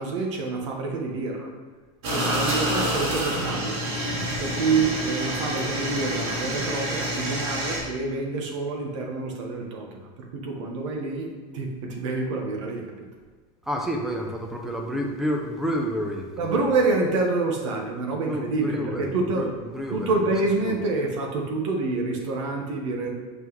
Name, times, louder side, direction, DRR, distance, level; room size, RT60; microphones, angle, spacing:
voice 1, 0.0-1.5 2.1-3.8 4.4-12.9 16.4-19.5 19.9-23.1, right 3 dB, 75° right, 1 dB, 1.3 m, -27 dB
sound 1, 2.0-7.8, equal, 40° right, 1.4 m, -28 dB
voice 2, 13.6-16.5 18.3-20.2 20.6-20.8, equal, ahead, 1 dB, 0.5 m, -30 dB
5.9 x 5.8 x 3.1 m, 1.5 s
supercardioid pair, 180°, 16 cm